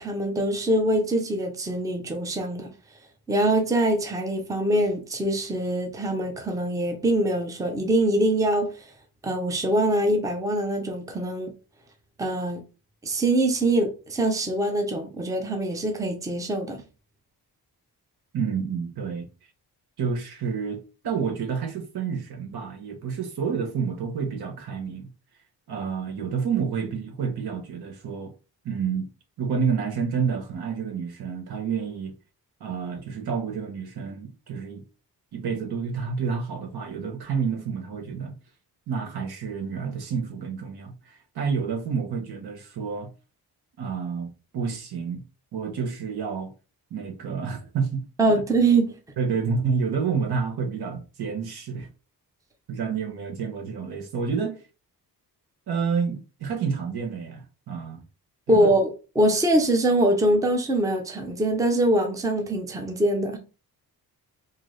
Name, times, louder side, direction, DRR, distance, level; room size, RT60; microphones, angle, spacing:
voice 1, 0.0-2.7 3.3-8.7 9.2-11.5 12.2-12.6 13.0-16.8 48.2-48.9 58.5-63.4, right 1 dB, 10° right, 0.5 m, -23 dB
voice 2, 18.3-19.3 20.0-25.1 25.7-28.3 28.6-29.1 29.4-32.1 32.6-34.8 35.3-38.4 38.9-43.1 43.8-45.2 45.5-46.5 46.9-48.0 49.2-51.9 52.7-54.6 55.7-58.0 58.5-58.7, right 6 dB, 80° right, 1.0 m, -29 dB
3.9 x 2.7 x 3.1 m
wide cardioid pair, 165°, 38 cm